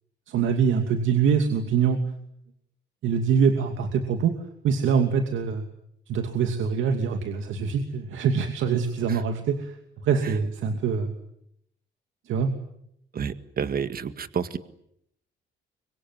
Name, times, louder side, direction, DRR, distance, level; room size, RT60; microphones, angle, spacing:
voice 1, 0.3-2.0 3.0-4.3 4.6-5.6 6.1-9.8 10.0-11.1 12.3-12.5, right 6 dB, 80° right, 6 dB, 2.7 m, -24 dB
voice 2, 13.1-14.6, right 7 dB, 50° right, 11 dB, 1.9 m, -30 dB
25.0 x 24.0 x 9.6 m, 0.75 s
cardioid pair, 90°, 20 cm